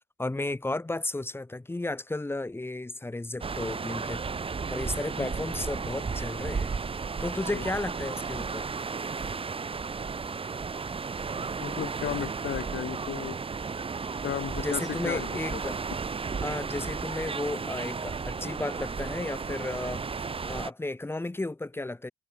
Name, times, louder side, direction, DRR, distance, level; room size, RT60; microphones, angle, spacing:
voice 1, 0.2-4.2 4.7-6.7 7.2-8.7 14.6-15.8 16.4-22.1, left 2 dB, 10° left, 1.2 m, -33 dB
sound 1, 3.4-20.7, right 5 dB, 30° right, 1.1 m, -34 dB
voice 2, 11.6-13.4 14.2-15.6, left 10 dB, 65° left, 2.8 m, -34 dB
cardioid pair, 90°, 20 cm